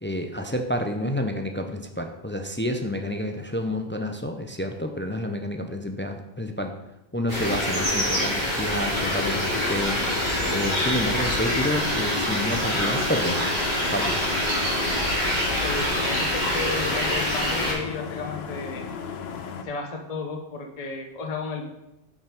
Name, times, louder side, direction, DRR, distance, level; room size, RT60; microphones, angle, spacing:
voice 1, 0.0-6.7 7.1-13.5 13.9-14.3, left 1 dB, 15° left, 5 dB, 0.4 m, -29 dB
sound 1, 7.3-17.7, equal, 45° right, 3.8 m, -25 dB
sound 2, 8.8-19.6, left 6 dB, 75° left, 1.0 m, -36 dB
voice 2, 15.6-18.8 19.6-21.6, left 4 dB, 40° left, 2 dB, 0.9 m, -33 dB
7.8 x 5.6 x 5.0 m, 0.92 s
omnidirectional pair, 1.1 m